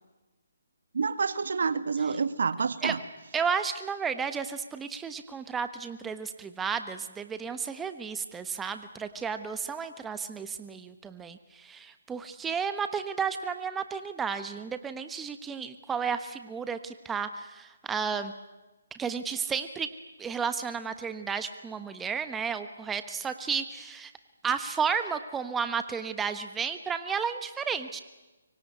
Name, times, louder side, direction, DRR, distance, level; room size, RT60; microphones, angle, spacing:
voice 1, 0.9-3.0, right 5 dB, 70° right, 13 dB, 1.7 m, -28 dB
voice 2, 3.3-18.3 18.9-19.9 20.2-24.1 24.4-28.0, right 6 dB, 10° right, 9 dB, 1.2 m, -32 dB
24.5 x 24.0 x 9.7 m, 1.1 s
hypercardioid pair, 155°, 0 cm